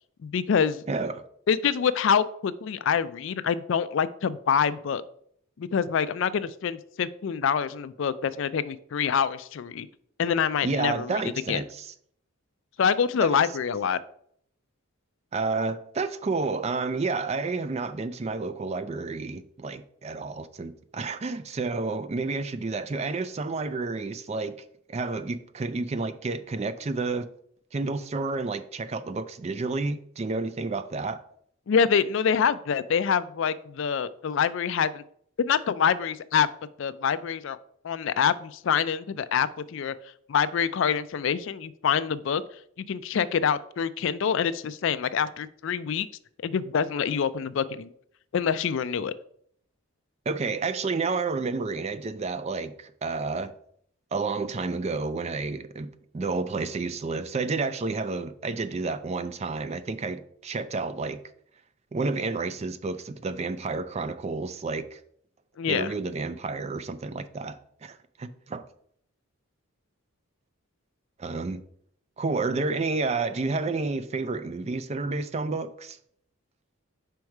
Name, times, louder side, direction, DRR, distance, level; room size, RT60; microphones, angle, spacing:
voice 1, 0.2-0.8 1.5-5.0 5.6-9.9 10.2-11.2 11.5-11.6 12.8-14.0 31.7-35.0 35.4-36.5 36.8-37.6 37.8-39.9 40.3-42.4 42.9-46.1 46.4-47.9 48.3-49.1 65.6-65.9, left 7 dB, 60° left, 0.3 m, -26 dB
voice 2, 0.9-1.2 10.6-11.9 13.2-13.5 15.3-27.3 27.7-31.2 50.3-53.5 54.1-61.2 61.9-65.0 65.7-68.6 71.2-71.6 72.2-76.0, right 3 dB, 30° right, 0.3 m, -30 dB
5.3 x 4.6 x 4.7 m
head